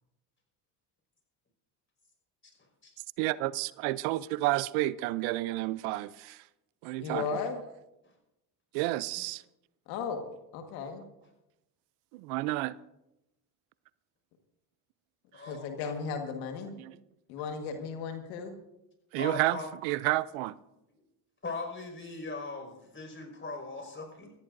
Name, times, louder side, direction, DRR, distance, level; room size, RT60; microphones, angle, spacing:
voice 1, 3.2-6.4 6.8-7.3 8.7-9.4 12.1-12.8 16.8-16.9 19.1-20.5, right 18 dB, 80° right, 0.6 m, -30 dB
voice 2, 7.0-7.6 9.9-10.2 10.5-11.0 15.4-16.8 17.3-18.5, left 5 dB, 90° left, 1.7 m, -35 dB
voice 3, 15.3-15.6 19.2-19.7 21.4-24.3, left 3 dB, 25° left, 5.4 m, -39 dB
23.0 x 15.0 x 2.6 m
supercardioid pair, 75°, 50 cm